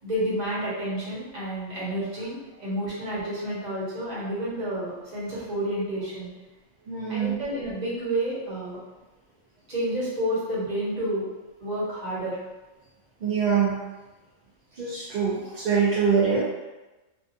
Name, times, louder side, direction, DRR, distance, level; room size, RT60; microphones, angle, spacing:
voice 1, 0.0-6.3 7.1-8.8 9.7-11.3 11.6-12.4, right 1 dB, 40° right, -8 dB, 1.0 m, -30 dB
voice 2, 6.9-7.4 13.2-13.8 14.8-16.4, right 6 dB, 55° right, -7 dB, 0.5 m, -24 dB
2.5 x 2.3 x 2.6 m, 1.2 s
omnidirectional pair, 1.2 m